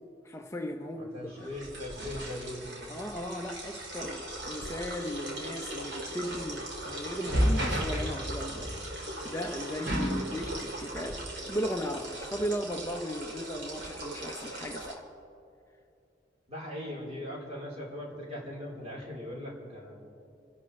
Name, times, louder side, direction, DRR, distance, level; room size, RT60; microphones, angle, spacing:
voice 1, 0.2-1.5 2.9-8.7 9.2-15.1, equal, 15° left, 2 dB, 0.6 m, -36 dB
voice 2, 1.0-2.9 16.5-20.0, left 1 dB, 35° right, -4 dB, 3.8 m, -40 dB
sound 1, 1.4-14.9, right 1 dB, 75° right, 2.8 m, -35 dB
29.5 x 11.5 x 3.2 m, 2.6 s
head